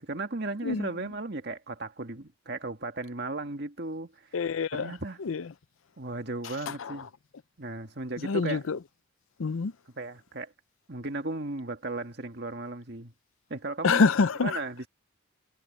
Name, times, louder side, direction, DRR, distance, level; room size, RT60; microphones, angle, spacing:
voice 1, 0.0-4.1 4.7-5.2 6.0-7.1 7.6-8.7 10.0-10.5 10.9-13.1 13.5-14.0 14.4-14.9, right 2 dB, 55° right, 2.0 m, -35 dB
voice 2, 4.3-4.9 5.3-5.4 6.9-7.0 8.2-8.8 9.4-9.7 13.8-14.6, left 4 dB, 85° left, 0.5 m, -25 dB
head